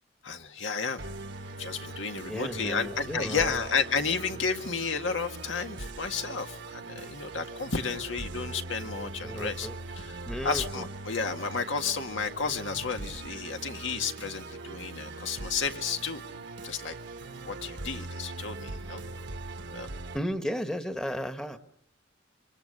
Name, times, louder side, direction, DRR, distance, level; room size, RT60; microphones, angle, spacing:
voice 1, 0.2-1.1 1.6-9.7 9.9-16.2 16.6-17.0 17.5-19.0 19.7-19.9, left 5 dB, 75° left, 5 dB, 1.9 m, -32 dB
Musical instrument, 1.0-20.2, right 2 dB, 65° right, 1.2 m, -41 dB
voice 2, 2.3-3.6 9.2-9.8 10.3-10.9 20.1-21.6, equal, 5° left, 8 dB, 1.3 m, -34 dB
26.0 x 25.0 x 6.7 m, 0.74 s
head